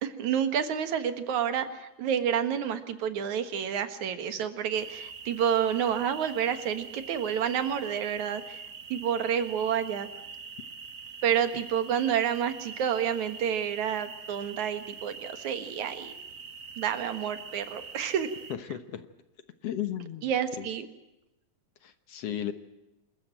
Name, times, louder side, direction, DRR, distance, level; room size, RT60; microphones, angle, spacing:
voice 1, 0.0-8.6 8.9-10.1 11.2-16.1 16.8-18.3 20.2-20.9, right 8 dB, 75° right, 10 dB, 2.9 m, -29 dB
sound 1, 4.7-18.5, right 5 dB, 45° right, 1.1 m, -44 dB
voice 2, 18.5-19.0 19.6-20.3 20.6-20.7 21.8-22.5, left 10 dB, 60° left, 11 dB, 2.0 m, -34 dB
27.0 x 14.0 x 8.9 m, 0.96 s
omnidirectional pair, 3.4 m